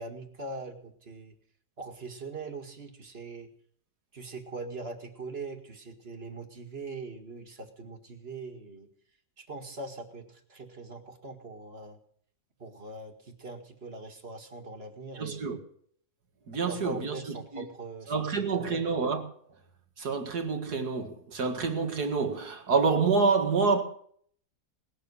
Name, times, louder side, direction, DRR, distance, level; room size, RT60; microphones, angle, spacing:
voice 1, 0.0-1.4 1.8-3.5 4.1-8.9 9.4-12.0 12.6-15.6 16.7-18.8, right 3 dB, 40° right, 2.2 m, -42 dB
voice 2, 15.2-15.6 16.5-17.2 17.5-17.6 18.1-19.2 20.0-23.8, right 4 dB, 80° right, 2.5 m, -27 dB
19.5 x 7.5 x 9.9 m
omnidirectional pair, 1.6 m